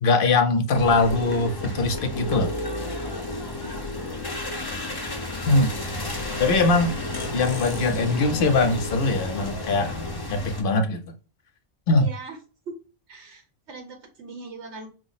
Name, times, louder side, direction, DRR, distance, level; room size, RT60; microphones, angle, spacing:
voice 1, 0.0-2.5 5.5-5.7 6.4-7.0 7.3-11.0 11.9-12.1, left 3 dB, 55° left, 0.8 m, -22 dB
sound 1, 0.7-10.6, left 2 dB, 25° left, 0.7 m, -31 dB
voice 2, 3.4-4.0 12.0-12.4 12.7-12.8 13.1-14.9, right 3 dB, 85° right, 1.3 m, -41 dB
4.8 x 2.0 x 4.0 m
omnidirectional pair, 1.2 m